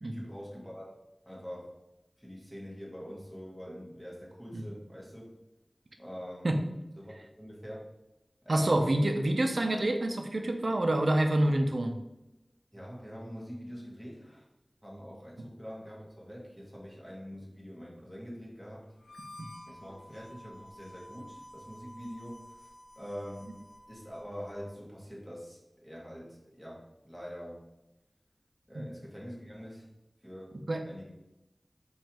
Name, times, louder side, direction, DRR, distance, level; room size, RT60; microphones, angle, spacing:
voice 1, 0.0-1.0 1.2-1.7 2.2-5.2 6.0-6.5 7.0-7.9 8.4-8.9 12.7-14.4 14.8-18.9 19.7-22.7 22.9-23.5 23.9-27.6 28.7-29.8 30.2-30.6 30.9-31.1, equal, ahead, -5 dB, 1.6 m, -44 dB
voice 2, 8.5-12.0 19.4-19.5 28.7-28.9 30.7-30.8, right 1 dB, 80° right, 5 dB, 0.5 m, -27 dB
Harmonica, 19.0-24.6, left 1 dB, 85° left, 1.4 m, -51 dB
5.5 x 3.1 x 2.9 m, 0.95 s
wide cardioid pair, 55°, 0 cm